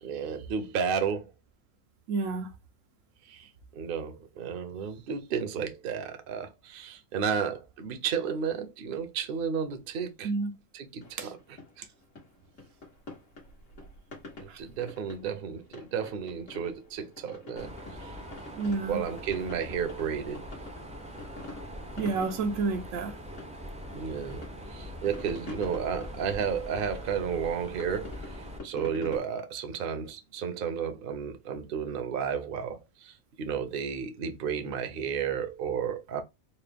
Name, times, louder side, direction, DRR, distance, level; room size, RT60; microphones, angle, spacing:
voice 1, 0.0-1.3 3.3-10.3 10.7-11.4 14.4-17.7 18.0-18.1 18.9-20.4 23.9-24.4 24.7-28.1 28.6-36.2, right 7 dB, 55° right, 0.8 m, -32 dB
voice 2, 2.1-2.5 10.2-10.5 11.2-11.3 14.5-14.6 18.5-19.0 22.0-23.2, right 4 dB, 85° right, 1.0 m, -30 dB
sound 1, 11.0-29.2, left 3 dB, 75° left, 1.8 m, -47 dB
Mechanisms, 17.5-28.6, equal, 10° right, 0.3 m, -43 dB
4.1 x 2.2 x 3.4 m
omnidirectional pair, 1.3 m